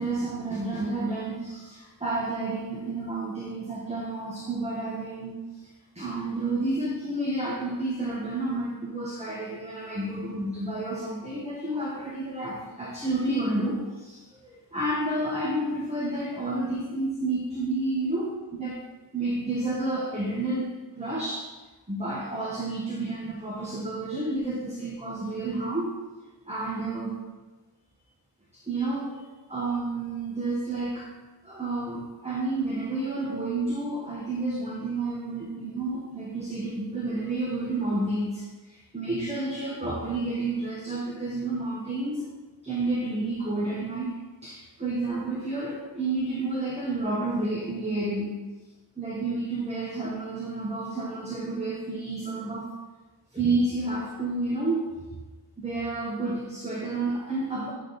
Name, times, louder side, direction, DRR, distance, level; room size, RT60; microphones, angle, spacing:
voice 1, 0.0-5.7 5.9-18.8 19.1-21.5 21.9-25.9 26.5-27.2 28.5-31.1 31.4-42.3 42.6-48.3 49.0-52.7 53.3-55.0 55.6-57.7, right 2 dB, 15° right, -5 dB, 1.3 m, -30 dB
9.9 x 4.0 x 4.2 m, 1.2 s
wide cardioid pair, 75°, 44 cm